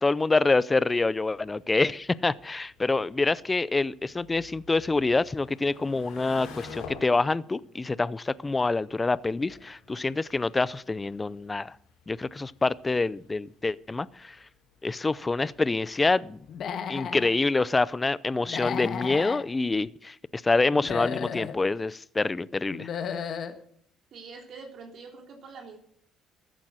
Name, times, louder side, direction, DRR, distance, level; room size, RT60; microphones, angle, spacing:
voice 1, 0.0-11.8 12.1-14.4 14.8-16.4 16.9-22.9, left 3 dB, 20° left, 20 dB, 0.5 m, -26 dB
sound 1, 1.2-16.7, left 5 dB, 85° left, 4.8 m, -51 dB
Human voice / Animal, 16.5-17.3 18.4-19.4 20.7-21.5 22.7-23.5, left 7 dB, 60° left, 1.5 m, -33 dB
voice 2, 24.1-25.8, right 4 dB, 60° right, 2 dB, 3.2 m, -44 dB
14.0 x 9.1 x 6.4 m, 0.63 s
supercardioid pair, 80°, 0 cm